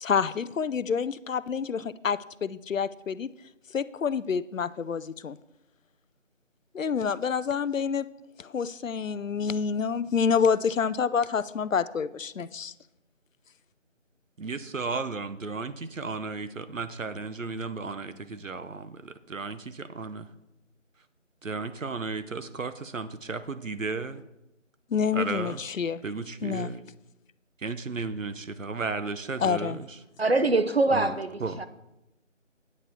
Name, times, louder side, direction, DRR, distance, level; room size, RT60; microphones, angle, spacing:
voice 1, 0.0-3.3 3.7-5.4 6.7-8.1 8.4-12.7 24.9-26.0 26.4-26.7 29.4-29.8, left 6 dB, 90° left, 15 dB, 0.6 m, -28 dB
voice 2, 14.4-20.3 21.4-24.2 25.1-25.6 26.0-26.8 27.6-29.9 30.9-31.1 31.4-31.7, right 4 dB, 85° right, 12 dB, 0.9 m, -34 dB
voice 3, 30.2-31.7, right 2 dB, 55° right, 10 dB, 0.8 m, -24 dB
10.0 x 8.5 x 4.4 m, 0.92 s
figure-of-eight pair, 175°, 38 cm